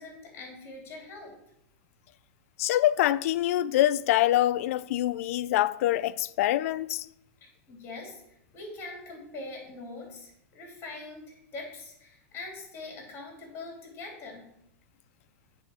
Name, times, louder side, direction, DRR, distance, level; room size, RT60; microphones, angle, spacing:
voice 1, 0.0-1.3 7.4-8.2 8.5-14.4, left 3 dB, 30° left, 3.3 m, -43 dB
voice 2, 2.6-7.1, left 14 dB, 65° left, 0.4 m, -25 dB
8.2 x 3.7 x 6.3 m
hypercardioid pair, 130°, 8 cm